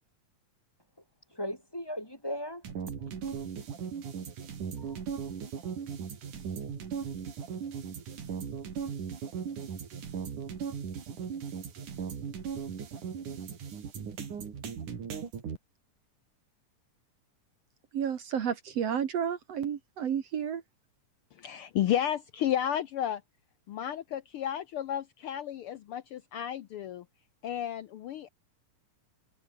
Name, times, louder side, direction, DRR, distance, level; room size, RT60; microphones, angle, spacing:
voice 1, 1.3-2.9 3.3-3.4 4.8-5.0 5.6-5.7, equal, 5° left, 3.6 m, -38 dB
sound 1, 2.7-15.6, right 7 dB, 70° right, 4.7 m, -38 dB
voice 2, 17.9-20.6, right 8 dB, 55° right, 2.4 m, -31 dB
voice 3, 21.3-23.2 23.7-27.0 27.4-28.3, left 10 dB, 85° left, 1.2 m, -32 dB
omnidirectional pair, 3.7 m